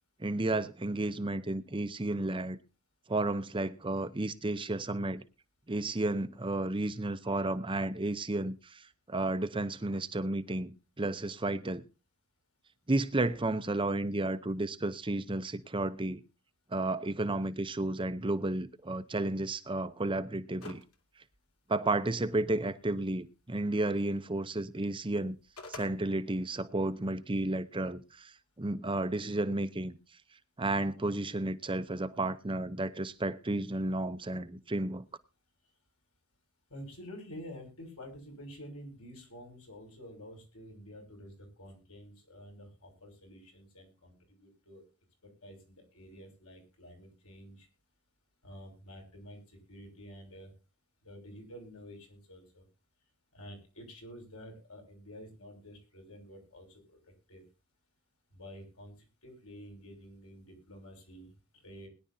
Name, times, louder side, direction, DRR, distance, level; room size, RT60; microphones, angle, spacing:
voice 1, 0.2-2.6 3.1-5.2 5.7-11.8 12.9-16.2 16.7-20.8 21.7-25.4 25.7-30.0 30.6-35.0, right 2 dB, 25° right, 0.7 m, -32 dB
sound 1, 20.6-20.9 21.3-21.4 25.2-25.9, left 3 dB, 85° left, 2.6 m, -45 dB
voice 2, 36.7-44.8 45.4-47.7 48.4-49.4 49.7-50.5 51.0-52.6 53.3-57.0 57.3-57.4 58.3-58.9 59.2-61.9, equal, 70° left, 6.2 m, -49 dB
21.5 x 10.5 x 2.7 m
head